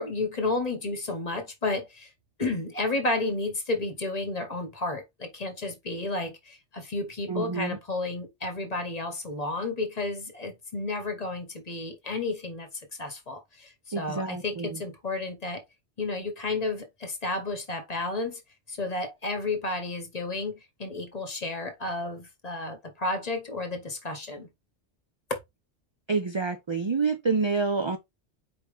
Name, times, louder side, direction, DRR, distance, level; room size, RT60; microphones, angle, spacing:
voice 1, 0.0-2.1 2.4-12.7 13.0-15.6 16.0-18.4 18.7-24.5 25.3-25.4, left 2 dB, 35° left, 1.2 m, -32 dB
voice 2, 7.3-7.8 13.9-14.8 26.1-28.0, right 4 dB, 45° right, 0.3 m, -28 dB
4.7 x 3.3 x 3.3 m
omnidirectional pair, 1.2 m